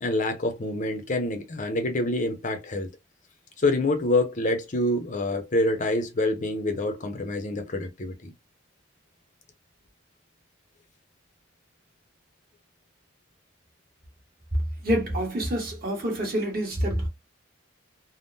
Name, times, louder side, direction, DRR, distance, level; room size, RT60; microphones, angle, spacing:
voice 1, 0.0-2.9 3.6-8.3, left 2 dB, 40° left, 0.6 m, -26 dB
voice 2, 14.8-17.1, equal, 45° right, 1.4 m, -27 dB
3.5 x 2.1 x 2.6 m
head